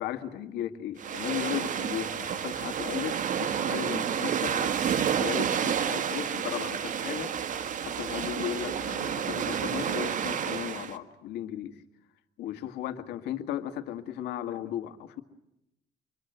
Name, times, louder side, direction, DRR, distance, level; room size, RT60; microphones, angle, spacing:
voice 1, 0.0-4.7 5.0-7.3 7.8-11.8 12.4-15.2, left 11 dB, 80° left, 8 dB, 2.0 m, -36 dB
sound 1, 1.0-11.0, right 8 dB, 50° right, 1.5 m, -30 dB
27.0 x 23.5 x 8.0 m, 0.86 s
cardioid pair, 110°, 17 cm